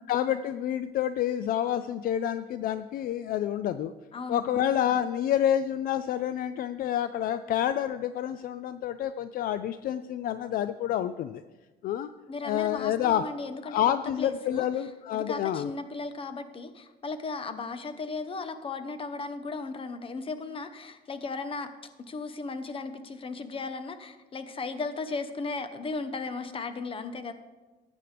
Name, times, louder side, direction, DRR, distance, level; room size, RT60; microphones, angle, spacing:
voice 1, 0.0-3.9 4.3-11.4 11.8-12.1 12.4-13.2 13.6-15.7, left 10 dB, 60° left, 12 dB, 0.4 m, -28 dB
voice 2, 4.1-4.6 12.3-13.8 14.2-14.7 15.1-21.7 22.0-27.3, left 3 dB, 30° left, 10 dB, 0.9 m, -36 dB
14.5 x 9.3 x 3.4 m, 1.2 s
cardioid pair, 110°, 17 cm